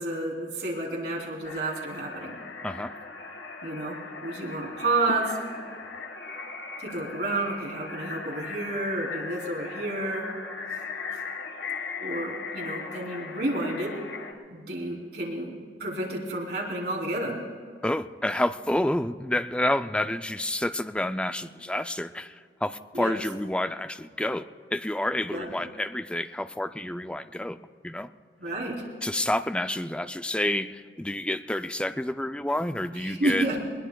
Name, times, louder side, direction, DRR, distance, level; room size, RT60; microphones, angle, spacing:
voice 1, 0.0-2.4 3.6-5.4 6.8-10.3 10.7-10.8 11.1-11.2 12.0-13.9 14.5-17.4 22.9-23.2 25.3-25.5 28.4-28.8 32.9-33.6, right 2 dB, 65° right, -4 dB, 3.6 m, -30 dB
sound 1, 1.4-14.3, left 4 dB, 85° left, 1.6 m, -38 dB
voice 2, 2.6-3.0 17.8-27.6 27.8-28.1 29.0-33.5, left 1 dB, 5° left, 10 dB, 0.4 m, -29 dB
21.0 x 21.0 x 2.3 m, 2.1 s
head